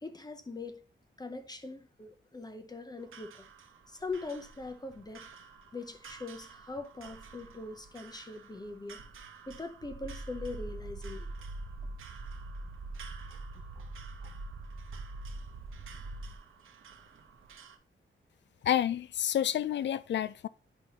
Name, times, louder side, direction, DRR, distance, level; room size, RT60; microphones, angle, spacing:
voice 1, 0.0-0.8 1.2-3.5 3.9-5.3 5.7-9.0 9.5-11.3, left 3 dB, 20° left, 0.6 m, -41 dB
sound 1, 3.0-17.8, right 6 dB, 85° right, 0.9 m, -53 dB
sound 2, 9.8-16.4, right 2 dB, 40° right, 0.6 m, -42 dB
voice 2, 18.6-20.5, left 10 dB, 60° left, 0.4 m, -29 dB
9.9 x 5.2 x 2.9 m
wide cardioid pair, 150°, 21 cm